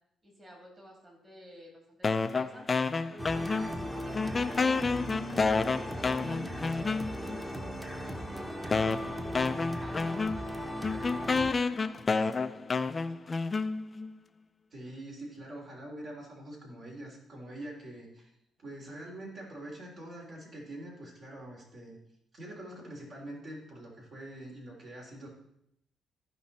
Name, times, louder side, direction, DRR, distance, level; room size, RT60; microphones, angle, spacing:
voice 1, 0.2-2.7 3.1-6.5 7.2-13.0, equal, 30° right, 0 dB, 3.2 m, -53 dB
sound 1, 2.0-3.9 4.1-7.4 8.1-8.2 8.7-14.1, left 4 dB, 30° left, 0.5 m, -30 dB
sound 2, 3.2-11.5, equal, 5° right, 1.2 m, -37 dB
voice 2, 14.7-18.3 18.6-22.0 22.3-25.3, right 1 dB, 55° right, -2 dB, 3.4 m, -44 dB
15.0 x 5.2 x 4.2 m, 0.75 s
cardioid pair, 90°, 0 cm